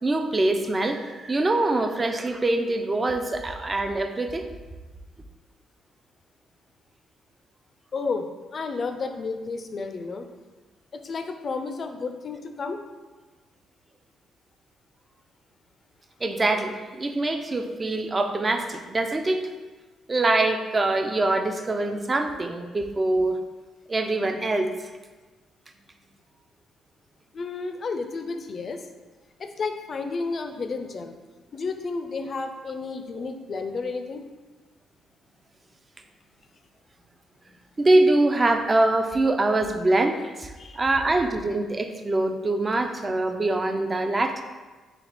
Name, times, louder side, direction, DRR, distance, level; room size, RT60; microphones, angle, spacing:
voice 1, 0.0-4.5 16.2-19.4 20.1-23.4 23.9-24.7 33.1-33.2 37.8-44.4, right 2 dB, 25° right, 6 dB, 0.4 m, -24 dB
voice 2, 7.9-8.3 8.5-10.3 10.9-12.8 27.3-28.9 29.4-31.2 31.5-34.2 40.6-40.8, left 4 dB, 45° left, 6 dB, 0.4 m, -31 dB
3.3 x 2.8 x 3.9 m, 1.3 s
cardioid pair, 90°, 0 cm